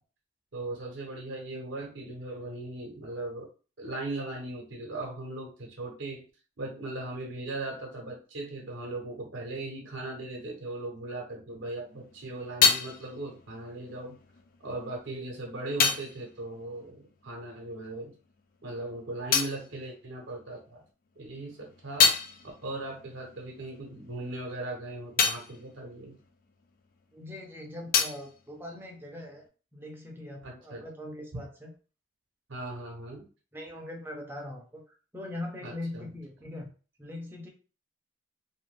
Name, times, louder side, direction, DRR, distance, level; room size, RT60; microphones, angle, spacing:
voice 1, 0.5-3.5 3.8-6.2 6.6-14.2 14.6-18.1 18.6-20.8 21.2-22.1 22.6-26.2 30.4-30.8 32.5-33.2 35.6-36.1, right 2 dB, 70° right, 0 dB, 0.7 m, -38 dB
sound 1, 11.8-17.8 18.0-20.7 21.2-27.2 27.4-29.5, left 6 dB, 45° left, 0.3 m, -31 dB
voice 2, 27.1-29.4 29.7-31.7 33.5-36.7 37.0-37.5, left 1 dB, 10° right, 0 dB, 0.5 m, -41 dB
2.6 x 2.1 x 3.1 m, 0.36 s
head